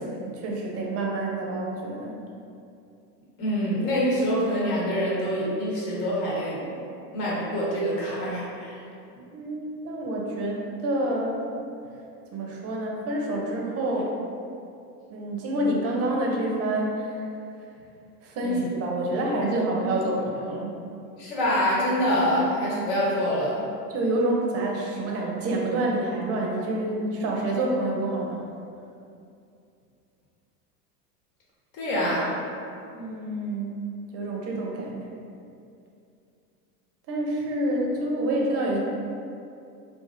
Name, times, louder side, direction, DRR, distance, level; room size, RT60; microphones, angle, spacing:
voice 1, 0.0-2.1 9.3-11.4 12.3-14.1 15.1-17.2 18.2-20.8 23.9-28.4 32.9-33.8 34.1-35.1 37.1-38.8, right 1 dB, 30° right, -2 dB, 0.5 m, -27 dB
voice 2, 3.4-6.7 7.1-8.8 18.4-18.7 21.2-23.6 31.7-32.3, equal, 60° left, -6 dB, 1.1 m, -25 dB
2.9 x 2.5 x 2.5 m, 2.6 s
hypercardioid pair, 95°, 48 cm